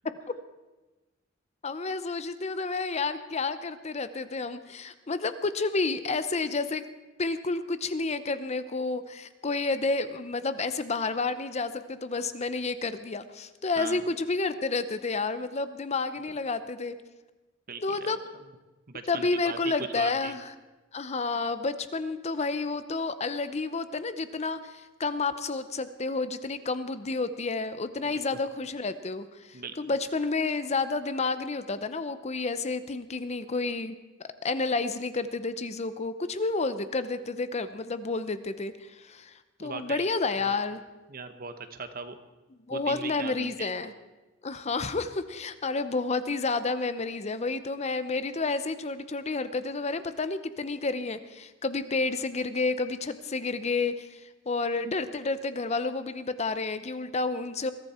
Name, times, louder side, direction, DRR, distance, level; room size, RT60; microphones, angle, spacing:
voice 1, 1.6-6.8 7.2-17.0 17.8-18.2 19.1-20.5 20.9-34.0 34.4-40.8 42.7-43.9 44.4-57.7, left 3 dB, 35° left, 12 dB, 0.7 m, -30 dB
voice 2, 17.7-18.4 18.9-20.3 28.0-28.2 29.5-29.7 39.6-40.1 40.4-40.5 41.1-42.1 42.7-43.7, right 4 dB, 45° right, 9 dB, 1.1 m, -39 dB
21.5 x 13.5 x 4.4 m, 1.1 s
head